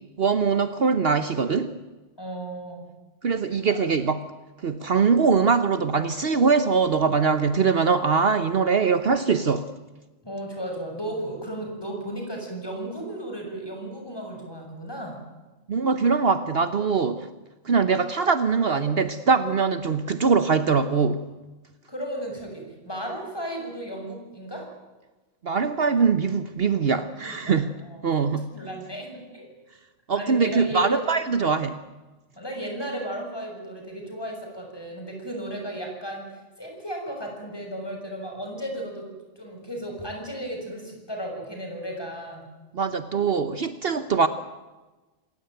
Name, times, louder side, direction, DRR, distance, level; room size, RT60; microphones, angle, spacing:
voice 1, 0.2-1.7 3.2-4.2 4.6-9.7 15.7-17.3 17.6-21.3 25.4-27.7 28.0-28.6 30.1-31.8 42.7-44.3, right 5 dB, 55° right, 11 dB, 1.2 m, -22 dB
voice 2, 2.2-2.9 3.7-3.8 10.2-15.2 21.9-24.7 27.2-28.2 28.5-29.5 30.1-31.0 32.4-36.3 36.6-39.1 39.4-42.5, right 1 dB, 20° left, 1 dB, 6.9 m, -34 dB
27.0 x 16.5 x 9.2 m, 1.2 s
omnidirectional pair, 1.2 m